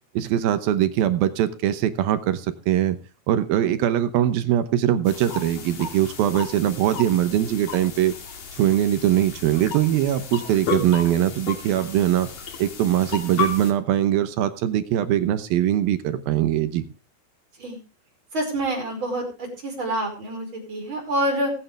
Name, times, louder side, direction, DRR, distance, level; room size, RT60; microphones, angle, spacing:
voice 1, 0.2-3.0 3.3-8.1 8.5-12.3 12.6-16.8, right 11 dB, 75° right, 11 dB, 2.7 m, -22 dB
sound 1, 5.0-13.7, left 6 dB, 60° left, 3.8 m, -33 dB
voice 2, 18.3-21.5, right 1 dB, 30° right, 1 dB, 5.8 m, -27 dB
22.5 x 9.1 x 3.4 m, 0.32 s
omnidirectional pair, 4.5 m